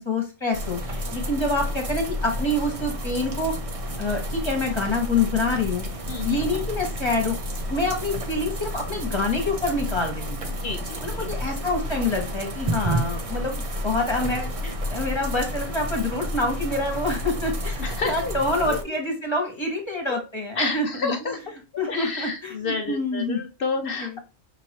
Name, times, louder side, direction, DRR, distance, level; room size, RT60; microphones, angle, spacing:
voice 1, 0.0-3.5 4.0-5.9 6.2-7.4 7.7-10.5 11.0-21.3 21.8-23.4 23.8-24.2, left 2 dB, 25° left, 1 dB, 1.3 m, -27 dB
sound 1, 0.5-18.8, equal, 35° right, 0.6 m, -30 dB
voice 2, 6.1-6.4 10.6-11.3 17.8-18.4 18.7-18.8 20.1-20.2 20.6-21.4 21.9-24.2, left 4 dB, 55° left, 5 dB, 0.7 m, -30 dB
5.5 x 3.0 x 2.9 m, 0.32 s
omnidirectional pair, 1.3 m